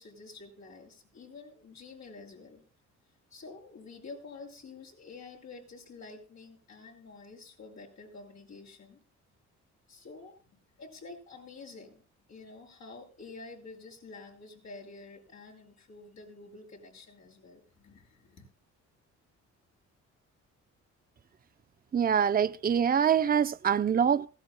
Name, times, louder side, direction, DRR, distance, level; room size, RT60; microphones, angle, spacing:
voice 1, 0.0-2.6 3.3-9.0 9.9-10.5 10.8-12.0 12.3-18.5, left 3 dB, 65° left, 8.0 m, -49 dB
voice 2, 21.9-24.3, right 8 dB, 30° right, 0.6 m, -25 dB
20.5 x 17.0 x 2.2 m
cardioid pair, 90°, 30 cm